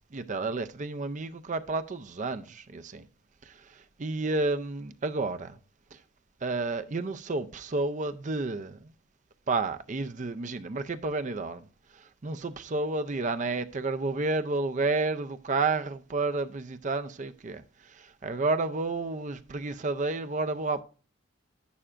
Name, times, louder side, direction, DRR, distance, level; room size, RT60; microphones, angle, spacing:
voice 1, 0.1-3.1 3.4-5.6 5.9-6.0 6.4-8.9 9.5-11.7 11.9-20.8, right 3 dB, 35° right, 0.5 m, -31 dB
11.0 x 8.7 x 2.5 m
head